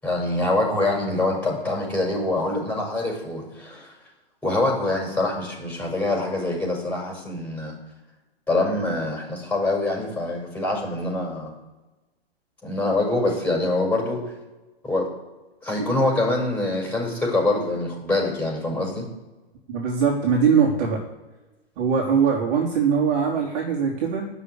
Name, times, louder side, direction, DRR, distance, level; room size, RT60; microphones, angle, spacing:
voice 1, 0.0-3.9 4.4-7.7 8.5-11.5 12.6-14.2 14.8-15.1 15.6-19.0, left 2 dB, 5° left, -2 dB, 7.1 m, -24 dB
voice 2, 19.7-21.0 21.8-24.3, right 6 dB, 40° right, -2 dB, 3.8 m, -21 dB
18.5 x 6.8 x 9.8 m, 1.1 s
figure-of-eight pair, 120°, 31 cm